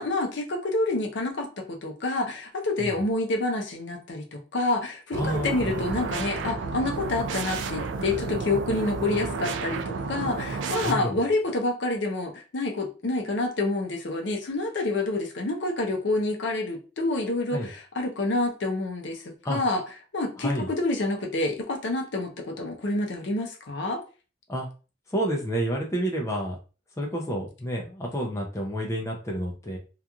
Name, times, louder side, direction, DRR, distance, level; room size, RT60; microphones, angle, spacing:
voice 1, 0.0-19.8 20.1-24.0, left 2 dB, 65° left, 2 dB, 0.6 m, -28 dB
sound 1, 5.1-10.9, right 4 dB, 70° right, 0.3 m, -31 dB
voice 2, 5.2-5.7 10.8-11.2 17.5-17.7 19.4-19.6 20.4-20.7 24.5-24.7 25.1-26.6 27.0-29.8, equal, 15° left, -1 dB, 0.4 m, -29 dB
2.8 x 2.4 x 2.3 m, 0.34 s
head